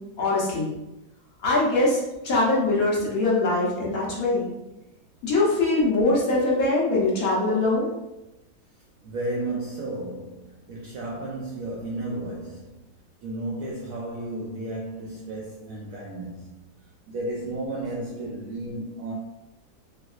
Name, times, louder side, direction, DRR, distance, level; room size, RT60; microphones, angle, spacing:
voice 1, 0.2-0.7 1.4-4.5 5.2-7.9, left 2 dB, 60° left, 1.2 m, -22 dB
voice 2, 9.0-12.8 13.2-16.7 17.1-19.1, right 2 dB, 70° right, 0.8 m, -33 dB
4.5 x 2.2 x 2.4 m
omnidirectional pair, 1.9 m